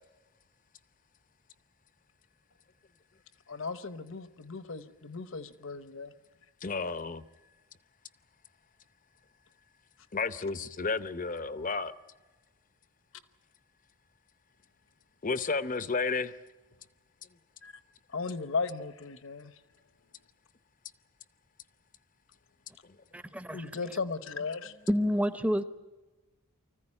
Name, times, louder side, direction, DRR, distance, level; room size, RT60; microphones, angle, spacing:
voice 1, 3.5-6.1 17.6-17.7 18.1-19.5 23.5-24.7, left 4 dB, 60° left, 1.0 m, -36 dB
voice 2, 6.6-7.2 10.1-11.9 15.2-16.4, left 4 dB, 35° left, 0.7 m, -32 dB
voice 3, 23.1-23.7 24.9-25.6, equal, 5° right, 0.7 m, -28 dB
25.0 x 15.0 x 9.9 m
head